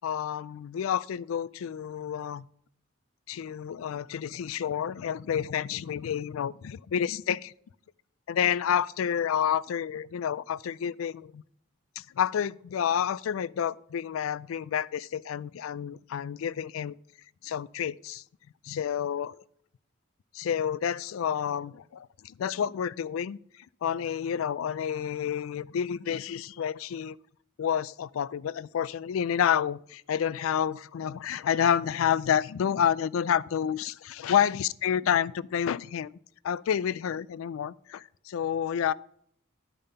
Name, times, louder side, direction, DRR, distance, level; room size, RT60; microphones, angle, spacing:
voice 1, 0.0-2.5 3.3-7.5 8.3-11.4 12.0-17.0 17.4-18.2 18.6-19.4 20.3-23.4 23.8-27.1 27.6-36.1 36.4-38.9, left 8 dB, 90° left, 0.3 m, -29 dB
11.0 x 5.2 x 5.5 m
head